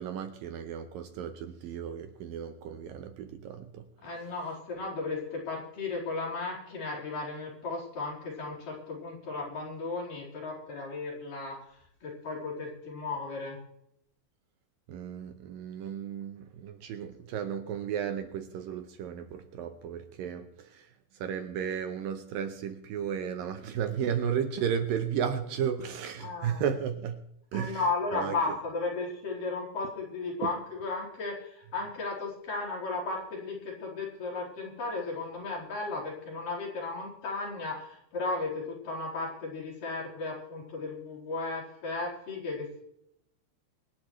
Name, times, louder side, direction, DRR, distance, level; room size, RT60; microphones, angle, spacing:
voice 1, 0.0-3.9 14.9-27.2 27.5-27.8 28.1-28.4, right 8 dB, 75° right, 2.3 m, -34 dB
voice 2, 4.0-13.6 26.2-26.6 27.5-42.8, left 3 dB, 55° left, 5.9 m, -35 dB
25.0 x 11.0 x 3.2 m
omnidirectional pair, 4.6 m